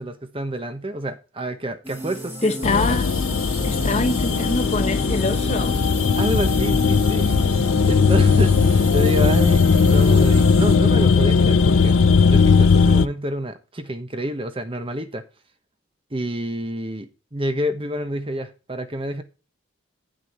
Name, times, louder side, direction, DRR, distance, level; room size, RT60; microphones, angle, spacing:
voice 1, 0.0-2.6 2.9-3.0 6.2-12.0 12.3-15.2 16.1-19.2, equal, 25° right, 1.1 m, -28 dB
sound 1, 1.8-10.8, right 1 dB, 10° right, 3.0 m, -32 dB
voice 2, 2.4-3.1 3.6-5.8, left 2 dB, 35° left, 1.0 m, -24 dB
sound 2, 2.6-13.1, left 5 dB, 85° left, 0.5 m, -18 dB
9.2 x 6.5 x 4.4 m
head